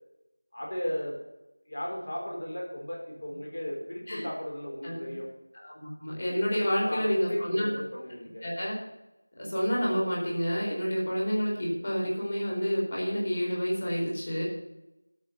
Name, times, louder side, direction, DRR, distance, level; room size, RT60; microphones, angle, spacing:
voice 1, 0.5-1.2 1.7-5.3 6.6-8.4, left 1 dB, 50° left, -1 dB, 4.2 m, -35 dB
voice 2, 5.5-7.8 8.4-8.8 9.4-14.4, equal, 35° left, -3 dB, 4.3 m, -29 dB
12.5 x 6.2 x 6.6 m, 0.95 s
figure-of-eight pair, 175°, 0 cm